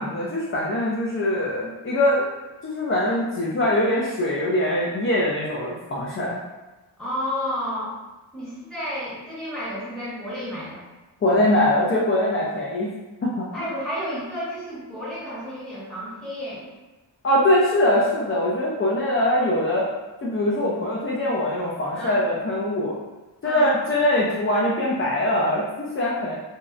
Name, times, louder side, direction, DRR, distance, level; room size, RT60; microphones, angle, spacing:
voice 1, 0.0-2.2 2.6-6.4 11.2-12.9 13.2-13.7 17.2-19.9 20.2-22.9 23.4-26.3, left 1 dB, 30° left, -5 dB, 0.5 m, -22 dB
voice 2, 7.0-8.0 8.3-10.8 13.5-16.7 21.9-22.2 23.4-23.7, equal, ahead, -9 dB, 1.1 m, -31 dB
2.7 x 2.1 x 2.4 m, 1.1 s
cardioid pair, 80°, 44 cm